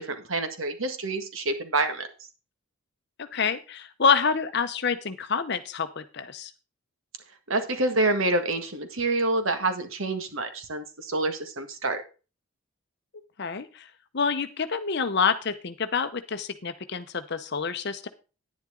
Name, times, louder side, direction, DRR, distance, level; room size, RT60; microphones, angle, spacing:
voice 1, 0.0-2.1 7.5-12.0, right 2 dB, 70° right, 8 dB, 1.8 m, -27 dB
voice 2, 3.2-6.5 13.4-13.9 14.1-18.1, left 5 dB, 50° left, 10 dB, 0.7 m, -27 dB
10.5 x 10.5 x 3.8 m, 0.33 s
head